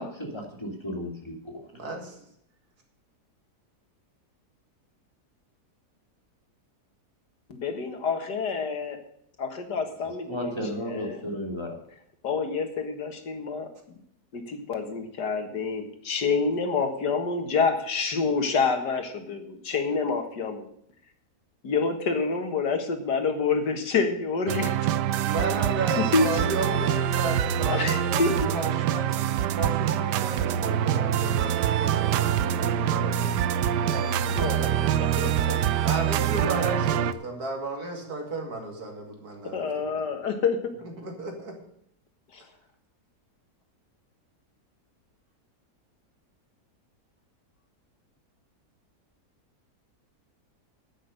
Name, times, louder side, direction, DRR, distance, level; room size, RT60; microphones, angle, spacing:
voice 1, 0.0-1.6 10.3-11.7, equal, 15° left, 0 dB, 2.6 m, -34 dB
voice 2, 1.7-2.2 25.2-29.2 29.6-33.4 33.9-34.5 35.8-40.1 40.8-41.6, right 2 dB, 65° right, 2 dB, 2.9 m, -34 dB
voice 3, 7.5-9.0 9.4-10.5 10.9-11.3 12.2-14.0 14.3-20.7 21.6-24.8 26.0-26.5 27.7-28.5 34.3-35.6 39.5-40.7 42.3-42.4, left 4 dB, 85° left, 6 dB, 2.1 m, -28 dB
sound 1, 24.5-37.1, right 10 dB, 90° right, 1.2 m, -25 dB
10.0 x 8.7 x 6.5 m, 0.71 s
omnidirectional pair, 1.7 m